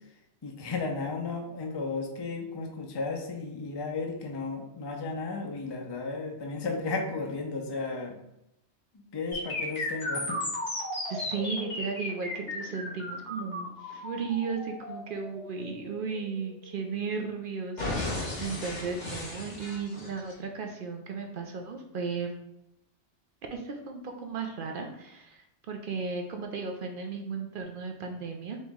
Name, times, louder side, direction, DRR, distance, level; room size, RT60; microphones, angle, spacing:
voice 1, 0.4-8.2 8.9-10.4 11.6-11.7, left 3 dB, 35° left, 3 dB, 0.4 m, -34 dB
sound 1, 9.3-17.3 17.8-20.3, left 2 dB, 80° left, 1.8 m, -35 dB
voice 2, 11.1-22.3 23.5-28.6, right 5 dB, 60° right, 3 dB, 0.6 m, -35 dB
4.2 x 2.9 x 3.5 m, 0.85 s
omnidirectional pair, 1.2 m